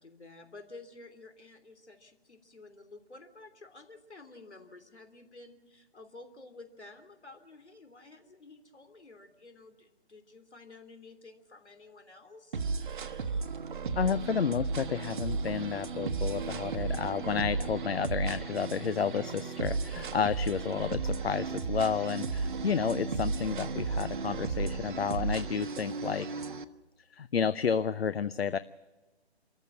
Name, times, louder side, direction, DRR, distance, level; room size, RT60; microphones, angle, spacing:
voice 1, 0.0-12.6 13.4-13.6, left 3 dB, 85° left, 7 dB, 3.4 m, -52 dB
sound 1, 12.5-26.6, right 4 dB, 50° right, 1.1 m, -34 dB
voice 2, 14.0-26.3 27.1-28.6, left 7 dB, 65° left, 15 dB, 0.7 m, -31 dB
27.5 x 14.5 x 7.5 m, 1.2 s
figure-of-eight pair, 150°, 33 cm